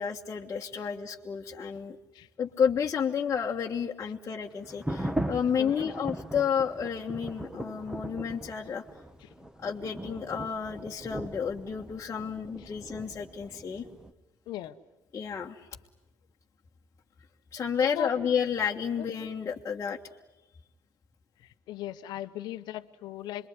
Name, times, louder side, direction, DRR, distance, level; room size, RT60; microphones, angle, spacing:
voice 1, 0.0-2.0 2.4-8.8 9.6-13.8 15.1-15.7 17.5-20.0, left 7 dB, 35° left, -1 dB, 1.5 m, -31 dB
sound 1, 4.6-14.1, right 1 dB, 10° right, 1.4 m, -39 dB
voice 2, 21.7-23.5, left 13 dB, 65° left, 9 dB, 1.1 m, -37 dB
26.5 x 22.0 x 9.8 m, 1.0 s
hypercardioid pair, 70°, 8 cm